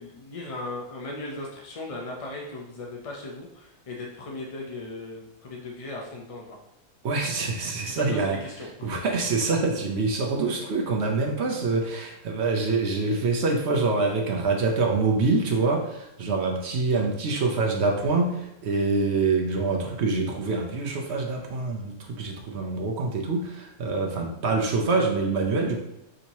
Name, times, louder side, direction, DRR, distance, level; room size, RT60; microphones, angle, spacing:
voice 1, 0.0-6.6 7.9-9.0, left 2 dB, 50° left, -1 dB, 0.4 m, -37 dB
voice 2, 7.0-8.4 8.8-25.8, right 3 dB, 60° right, 1 dB, 0.9 m, -25 dB
6.3 x 2.8 x 3.0 m, 0.89 s
omnidirectional pair, 1.5 m